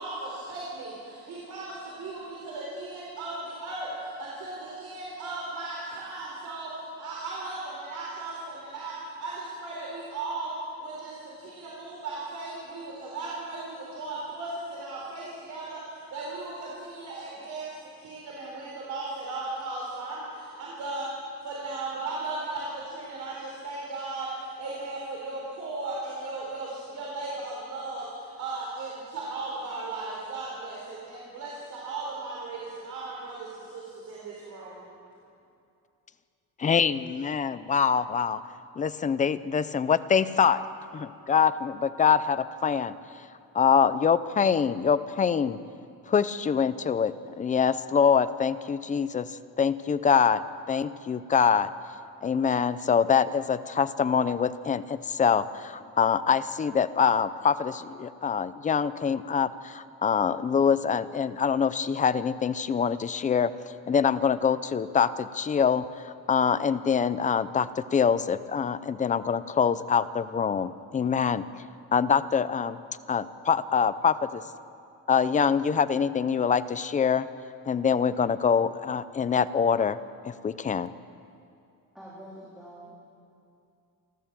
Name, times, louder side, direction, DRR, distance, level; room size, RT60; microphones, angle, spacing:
voice 1, 0.0-10.5 10.8-17.7 18.0-34.8, right 3 dB, 50° right, -4 dB, 4.1 m, -36 dB
voice 2, 36.6-38.4 38.8-40.6 40.9-42.9 43.5-45.6 46.1-51.7 52.2-63.5 63.9-71.4 71.9-72.8 73.1-74.4 75.1-77.3 77.7-80.0 80.2-80.9, left 7 dB, 20° left, 14 dB, 0.5 m, -25 dB
voice 3, 81.9-83.1, right 1 dB, ahead, -7 dB, 3.2 m, -46 dB
28.5 x 12.5 x 7.5 m, 2.6 s
cardioid pair, 160°, 37 cm